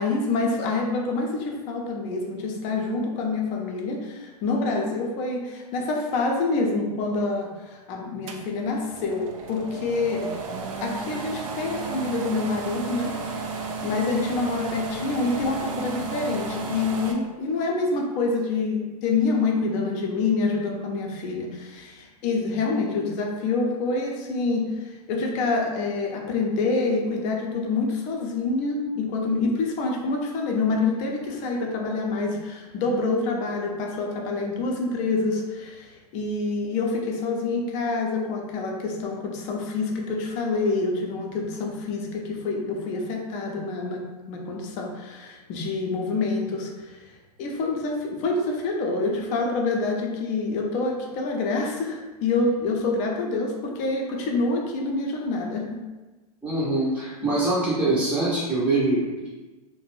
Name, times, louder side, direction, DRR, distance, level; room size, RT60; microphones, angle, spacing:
voice 1, 0.0-10.3 10.8-13.1 13.8-47.0 47.4-55.8, left 3 dB, 35° left, 1 dB, 0.6 m, -27 dB
sound 1, 8.3-17.1, right 5 dB, 55° right, 0.4 m, -33 dB
voice 2, 56.4-59.3, right 2 dB, 5° right, -11 dB, 0.7 m, -24 dB
2.4 x 2.2 x 3.1 m, 1.2 s
hypercardioid pair, 110°, 20 cm